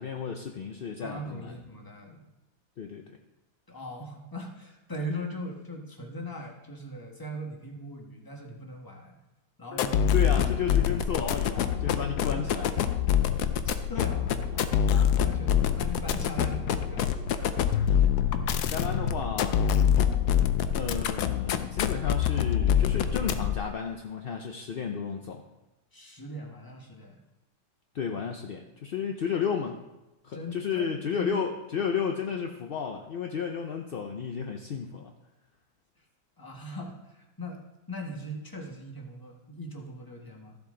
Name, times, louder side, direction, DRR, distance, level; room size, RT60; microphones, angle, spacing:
voice 1, 0.0-1.5 2.8-3.2 10.1-12.7 18.7-19.6 20.7-25.4 27.9-29.8 30.2-35.1, left 6 dB, 55° left, 3 dB, 0.6 m, -32 dB
voice 2, 1.0-2.2 3.7-9.1 9.6-10.1 12.1-12.5 13.6-17.5 25.9-27.2 30.3-31.4 36.4-37.6 37.9-40.6, equal, 15° left, 1 dB, 1.3 m, -40 dB
sound 1, 9.7-23.7, left 9 dB, 85° left, 1.2 m, -25 dB
14.0 x 7.1 x 3.8 m, 1.0 s
omnidirectional pair, 1.7 m